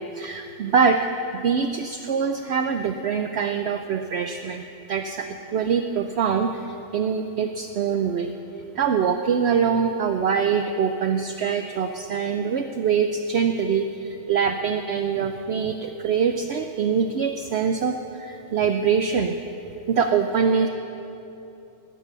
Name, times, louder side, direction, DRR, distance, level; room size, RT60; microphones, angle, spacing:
voice 1, 0.0-8.3 8.7-19.4 19.9-20.7, right 6 dB, 60° right, 6 dB, 0.8 m, -24 dB
19.0 x 8.6 x 6.7 m, 2.9 s
omnidirectional pair, 1.4 m